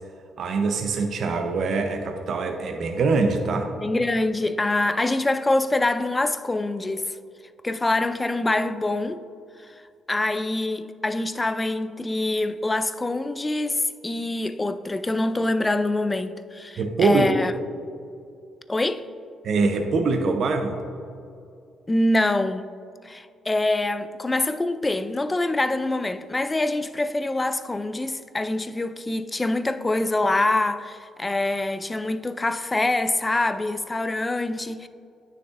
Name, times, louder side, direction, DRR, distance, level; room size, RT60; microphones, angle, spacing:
voice 1, 0.4-3.7 16.8-17.3 19.4-20.8, right 4 dB, 60° right, 0.6 m, -23 dB
voice 2, 3.8-7.2 7.6-9.2 10.1-17.5 18.7-19.1 21.9-22.7 23.0-34.9, left 2 dB, 20° left, 0.3 m, -25 dB
9.6 x 6.5 x 2.5 m
cardioid pair, 90°, 0 cm